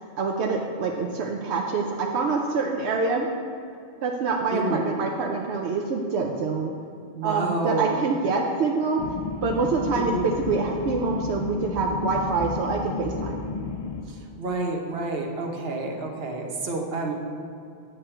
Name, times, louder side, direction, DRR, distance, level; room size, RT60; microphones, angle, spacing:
voice 1, 0.2-3.3 4.0-6.7 7.2-9.0 9.4-13.4, right 4 dB, 85° right, 1 dB, 0.9 m, -26 dB
voice 2, 4.5-4.8 7.1-8.0 9.9-10.2 14.1-17.1, right 3 dB, 70° right, 2 dB, 1.2 m, -29 dB
sound 1, 9.0-14.0, left 5 dB, 50° left, 0.4 m, -33 dB
8.6 x 7.8 x 4.4 m, 2.5 s
omnidirectional pair, 1.1 m